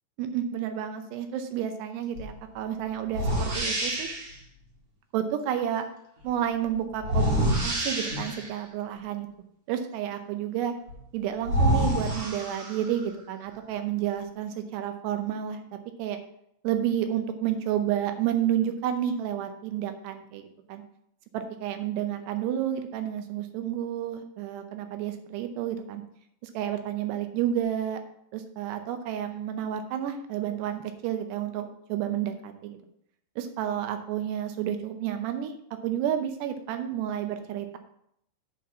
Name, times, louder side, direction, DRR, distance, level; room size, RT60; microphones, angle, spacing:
voice 1, 0.2-4.1 5.1-5.9 6.2-9.3 9.7-10.7 11.1-15.6 16.0-16.2 16.6-20.8 21.3-26.0 26.4-28.0 28.3-32.8 33.4-35.5 35.8-37.8, right 10 dB, 80° right, 7 dB, 2.8 m, -30 dB
sound 1, 2.2-2.3 3.1-4.3 7.0-8.6 10.9-11.0 11.4-13.0, right 1 dB, 40° right, 1.3 m, -27 dB
8.5 x 4.5 x 6.9 m, 0.72 s
omnidirectional pair, 4.9 m